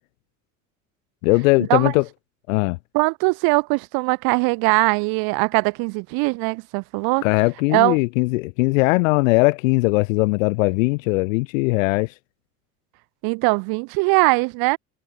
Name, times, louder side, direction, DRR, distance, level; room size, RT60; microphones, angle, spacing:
voice 1, 1.2-2.0 2.5-2.8 7.2-12.1, left 24 dB, 60° left, 1.5 m, -19 dB
voice 2, 2.9-7.2 7.7-8.0 13.2-14.8, right 30 dB, 55° right, 1.7 m, -21 dB
figure-of-eight pair, 60°, 44 cm